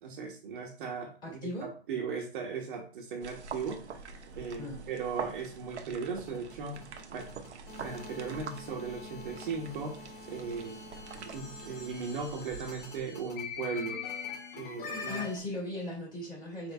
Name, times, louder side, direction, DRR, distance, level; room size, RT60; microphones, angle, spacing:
voice 1, 0.0-3.8 4.4-6.8 7.1-7.3 7.8-10.0 10.3-10.8 11.2-14.0 14.6-15.3, right 5 dB, 50° right, 1 dB, 1.1 m, -37 dB
voice 2, 1.2-1.7 4.6-4.8 15.1-16.7, left 2 dB, 15° left, -4 dB, 2.3 m, -37 dB
sound 1, 3.2-13.0, right 5 dB, 80° right, 0.8 m, -45 dB
sound 2, 5.8-15.4, left 5 dB, 55° left, 1.6 m, -44 dB
5.5 x 3.4 x 2.3 m, 0.38 s
hypercardioid pair, 130°, 33 cm